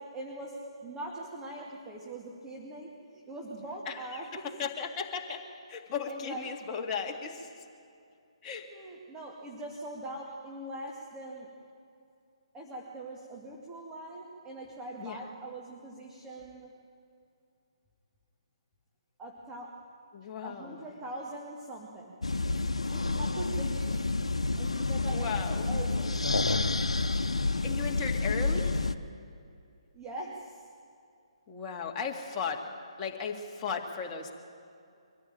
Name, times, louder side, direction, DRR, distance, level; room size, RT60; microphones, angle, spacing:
voice 1, 0.0-4.5 6.1-6.6 8.7-11.5 12.5-16.7 19.2-19.8 20.4-22.2 22.8-24.1 24.6-26.2 29.9-30.6, right 1 dB, 15° right, -2 dB, 2.2 m, -42 dB
voice 2, 4.3-5.4 5.7-7.5 8.4-8.7 15.0-15.2 20.1-20.8 25.0-25.7 27.6-28.9 31.5-32.6 33.0-34.3, left 6 dB, 20° left, 1 dB, 2.1 m, -36 dB
sound 1, 22.2-28.9, left 3 dB, 80° left, 0.9 m, -29 dB
24.0 x 15.5 x 9.2 m, 2.4 s
figure-of-eight pair, 140°, 3 cm